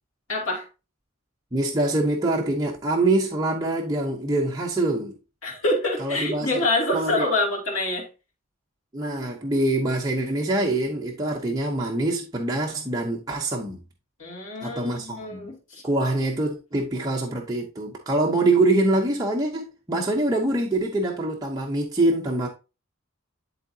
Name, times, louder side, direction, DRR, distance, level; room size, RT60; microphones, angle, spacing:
voice 1, 0.3-0.7 5.4-8.1 14.2-15.8, left 2 dB, 75° left, 2.6 m, -26 dB
voice 2, 1.5-5.1 6.0-6.7 6.9-7.3 8.9-13.8 14.6-15.5 15.8-22.5, right 2 dB, 20° right, 0.8 m, -24 dB
11.0 x 3.8 x 2.7 m
head